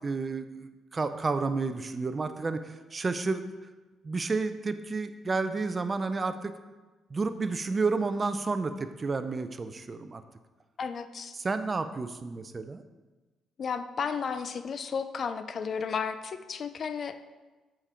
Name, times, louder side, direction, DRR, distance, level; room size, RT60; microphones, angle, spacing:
voice 1, 0.0-3.4 4.0-6.5 7.1-10.2 11.4-12.8, right 4 dB, 30° right, 10 dB, 0.5 m, -31 dB
voice 2, 10.8-11.4 13.6-17.2, left 6 dB, 50° left, 11 dB, 0.4 m, -33 dB
7.2 x 5.2 x 4.3 m, 1.2 s
cardioid pair, 90°, 0 cm